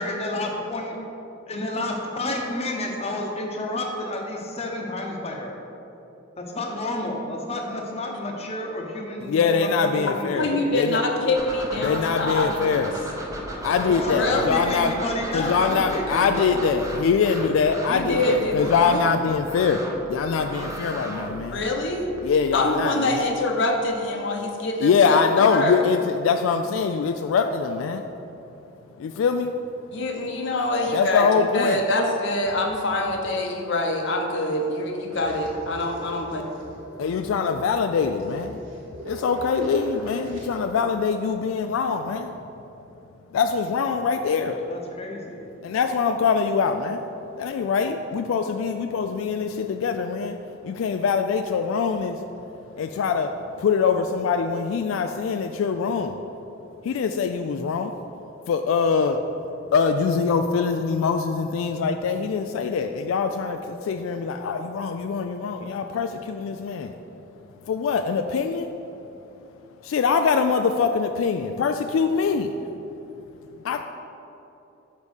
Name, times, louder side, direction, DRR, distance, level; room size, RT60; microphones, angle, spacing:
voice 1, 0.0-0.9 1.5-5.6 6.5-10.7 13.5-16.6 44.5-45.5, left 1 dB, 30° left, 1 dB, 0.8 m, -31 dB
voice 2, 9.2-11.0 11.8-13.0 13.6-15.0 15.3-19.8 20.1-21.6 22.2-23.2 24.4-24.5 24.8-28.1 29.0-29.6 30.9-31.8 37.0-38.6 39.0-42.3 43.3-44.6 45.6-47.1 47.4-50.4 50.6-52.2 52.8-56.2 56.8-58.0 58.5-59.2 59.7-67.0 67.6-68.7 69.8-72.6 73.6-73.8, left 5 dB, 90° left, 7 dB, 0.3 m, -23 dB
voice 3, 10.4-12.8 14.1-14.5 17.9-19.0 21.5-22.1 22.5-25.2 25.5-25.8 29.9-36.4, left 2 dB, 65° left, 2 dB, 0.8 m, -25 dB
sound 1, 11.4-22.2, right 1 dB, 15° right, 0.8 m, -35 dB
sound 2, 35.1-40.5, equal, 90° right, 1.4 m, -40 dB
5.4 x 5.2 x 6.3 m, 2.9 s
head